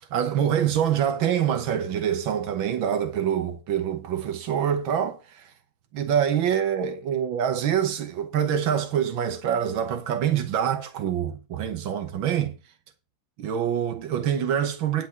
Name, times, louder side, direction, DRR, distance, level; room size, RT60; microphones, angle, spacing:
voice 1, 0.1-5.5 5.9-12.6 13.4-15.1, right 9 dB, 85° right, 1.9 m, -25 dB
10.5 x 5.4 x 5.9 m
omnidirectional pair, 2.1 m